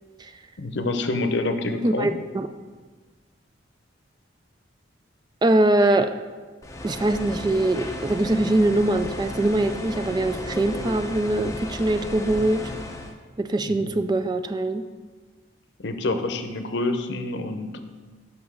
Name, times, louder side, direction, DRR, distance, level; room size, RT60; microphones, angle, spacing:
voice 1, 0.6-2.1 13.6-13.9 15.8-17.8, left 2 dB, 65° left, 8 dB, 0.7 m, -27 dB
voice 2, 1.8-2.5 5.4-6.1 6.8-12.7 13.4-14.8, right 1 dB, 25° right, 9 dB, 0.3 m, -22 dB
sound 1, 6.6-13.1, left 1 dB, 15° left, 0.7 m, -34 dB
6.0 x 5.8 x 6.2 m, 1.4 s
head